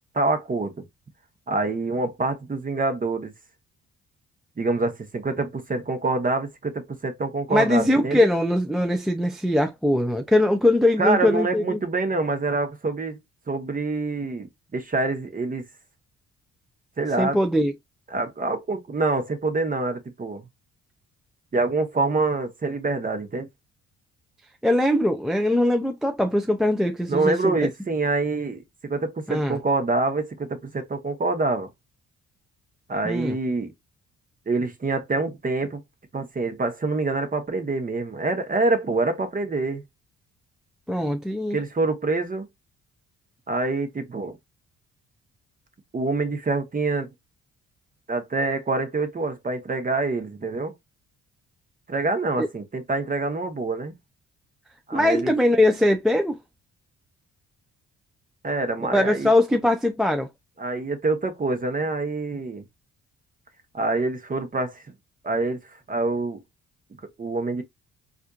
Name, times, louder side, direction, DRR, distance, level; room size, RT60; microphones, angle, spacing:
voice 1, 0.1-0.8 1.5-3.3 4.6-8.3 11.0-13.2 13.5-14.5 14.7-15.7 17.0-17.4 18.1-20.5 21.5-23.5 27.1-31.7 32.9-33.7 34.5-35.8 36.1-39.8 41.5-42.5 43.5-44.4 45.9-47.1 48.1-50.7 51.9-53.9 54.9-55.3 58.4-59.3 60.6-62.6 63.7-64.8 65.2-66.4 67.2-67.6, right 3 dB, 30° right, 0.9 m, -26 dB
voice 2, 7.5-11.8 17.2-17.7 24.6-27.5 29.3-29.6 33.0-33.4 40.9-41.6 52.4-52.5 54.9-56.4 58.9-60.3, left 1 dB, ahead, 0.4 m, -21 dB
4.2 x 2.5 x 2.3 m
cardioid pair, 90°, 30 cm